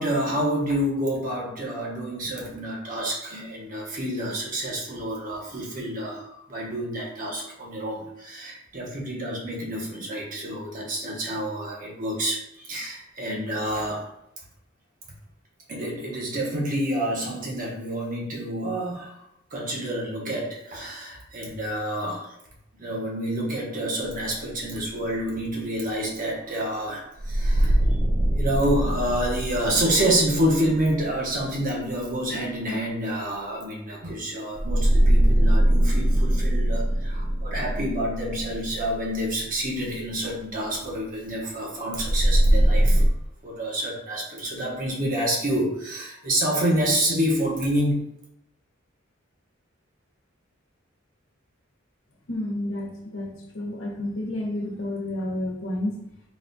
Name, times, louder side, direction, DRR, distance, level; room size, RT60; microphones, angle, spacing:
voice 1, 0.0-14.1 15.7-19.1 19.5-22.3 22.8-27.8 28.4-43.0 43.4-48.1, right 1 dB, 45° right, -2 dB, 1.0 m, -28 dB
sound 1, 27.2-31.9 34.5-39.6 41.9-43.1, right 1 dB, 20° right, 0.3 m, -22 dB
voice 2, 52.3-56.0, left 1 dB, 70° left, -1 dB, 1.0 m, -30 dB
4.1 x 2.4 x 3.9 m, 0.79 s
head